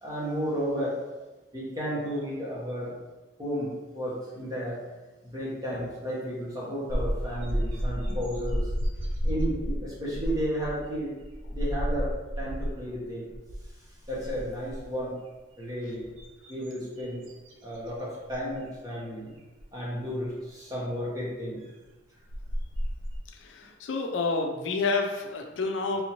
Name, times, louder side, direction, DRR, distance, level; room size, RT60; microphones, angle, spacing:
voice 1, 0.0-1.0 1.5-3.0 3.4-4.8 5.2-8.7 9.2-11.1 11.5-13.3 14.1-15.2 15.6-16.1 16.5-17.2 17.6-19.3 19.7-21.6, equal, 20° right, -7 dB, 1.0 m, -33 dB
sound 1, 6.9-12.9 13.3-13.7 14.0-15.0 15.6-17.9 18.3-18.5 19.6-19.7 21.8-21.9 22.3-23.2, equal, 80° right, 0.6 m, -31 dB
voice 2, 23.4-26.0, left 3 dB, 75° left, 4 dB, 0.4 m, -29 dB
3.5 x 2.7 x 2.9 m, 1.1 s
head